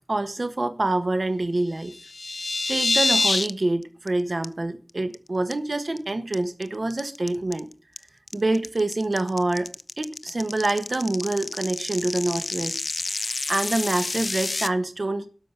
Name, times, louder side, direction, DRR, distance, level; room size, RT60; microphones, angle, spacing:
voice 1, 0.1-1.9 2.7-7.7 8.3-12.8 13.1-15.3, right 2 dB, 65° right, 1.6 m, -26 dB
sound 1, 1.8-3.5 3.8-4.1 4.4-4.5 4.9-5.1 5.5-6.0 6.3-14.7, left 3 dB, 85° left, 0.5 m, -27 dB
12.5 x 5.3 x 8.3 m
wide cardioid pair, 50°, 0 cm